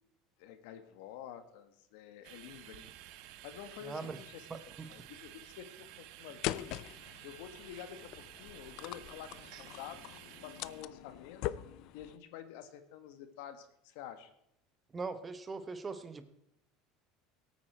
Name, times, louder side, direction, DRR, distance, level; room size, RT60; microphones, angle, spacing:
voice 1, 0.4-2.9 3.4-4.5 4.8-6.8 7.2-8.1 8.4-10.0 10.4-11.4 11.9-14.3, left 10 dB, 75° left, 9 dB, 1.5 m, -49 dB
sound 1, 2.2-10.8, right 13 dB, 65° right, 0.8 m, -53 dB
voice 2, 3.8-4.2 4.5-4.9 14.9-16.2, right 4 dB, 20° right, 12 dB, 0.9 m, -41 dB
sound 2, 6.4-12.2, left 15 dB, 60° left, 0.4 m, -42 dB
18.0 x 9.0 x 4.4 m, 0.78 s
supercardioid pair, 140°, 0 cm